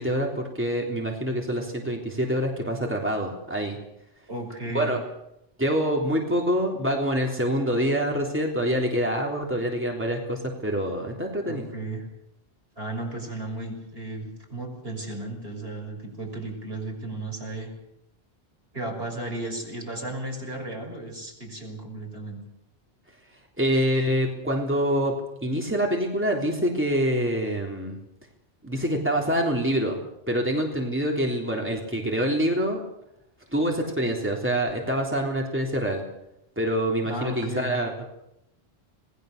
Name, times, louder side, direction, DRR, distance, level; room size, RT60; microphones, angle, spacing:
voice 1, 0.0-3.8 4.7-5.0 5.6-11.6 23.6-25.1 25.4-28.0 28.6-30.0 30.3-32.8 33.5-36.0 36.6-38.1, equal, 10° right, 0 dB, 3.6 m, -26 dB
voice 2, 4.3-5.0 11.5-12.1 12.8-17.7 18.7-22.4 37.0-37.8, right 2 dB, 70° right, 1 dB, 6.8 m, -34 dB
27.0 x 20.0 x 6.7 m, 0.81 s
omnidirectional pair, 1.1 m